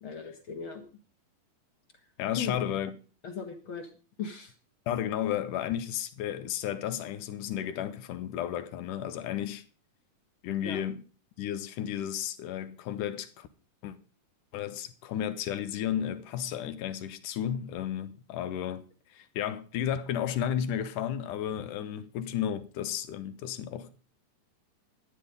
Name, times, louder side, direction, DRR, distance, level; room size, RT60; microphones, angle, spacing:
voice 1, 0.0-0.8 2.3-2.6 3.2-3.9 4.2-4.5 10.6-10.8, left 6 dB, 45° left, 1.9 m, -37 dB
voice 2, 2.2-2.9 4.9-9.6 10.4-11.0 11.4-13.5 13.8-14.0 14.5-18.8 19.1-23.9, left 10 dB, 75° left, 2.3 m, -33 dB
13.0 x 9.9 x 5.1 m
omnidirectional pair, 4.1 m